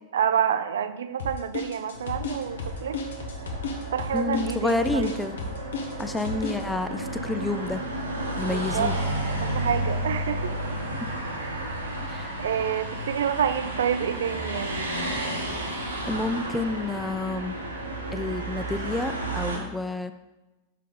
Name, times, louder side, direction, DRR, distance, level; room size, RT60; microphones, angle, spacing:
voice 1, 0.1-3.0 3.9-5.2 8.5-8.9 9.3-10.5 11.4-11.6 12.4-14.9, right 8 dB, 65° right, 11 dB, 0.4 m, -28 dB
sound 1, 1.2-6.6, left 3 dB, 65° left, 0.9 m, -33 dB
sound 2, 1.9-19.6, right 1 dB, 80° right, 1.2 m, -32 dB
voice 2, 4.1-5.4 6.0-7.8 8.4-9.0 12.1-12.3 16.1-17.5 18.1-20.1, left 2 dB, 5° left, 9 dB, 0.3 m, -29 dB
6.4 x 5.3 x 3.6 m, 1.1 s
figure-of-eight pair, 90°, 0 cm